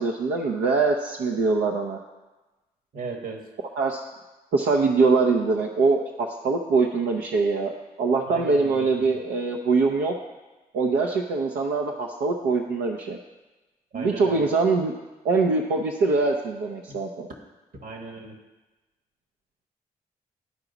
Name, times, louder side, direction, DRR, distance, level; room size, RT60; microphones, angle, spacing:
voice 1, 0.0-2.0 3.8-4.1 4.5-7.7 8.0-10.1 10.7-13.2 13.9-14.9 15.2-17.3, right 4 dB, 85° right, 1 dB, 0.6 m, -23 dB
voice 2, 2.9-3.5 8.3-9.2 13.9-14.5 16.9-17.0 17.7-18.4, right 3 dB, 60° right, 3 dB, 1.5 m, -37 dB
12.0 x 4.9 x 3.9 m, 1.2 s
supercardioid pair, 45°, 17 cm